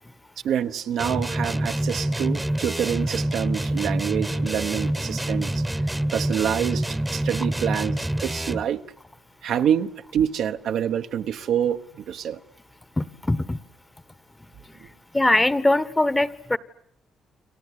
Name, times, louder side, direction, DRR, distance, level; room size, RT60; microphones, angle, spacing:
voice 1, 0.4-5.6 6.1-7.9 8.2-8.8 9.4-12.4, right 9 dB, 75° right, 1.2 m, -26 dB
sound 1, 1.0-8.7, right 1 dB, 10° right, 1.1 m, -27 dB
voice 2, 13.0-13.6 15.1-16.6, left 2 dB, 15° left, 1.2 m, -21 dB
29.5 x 24.0 x 8.3 m
cardioid pair, 90°, 0 cm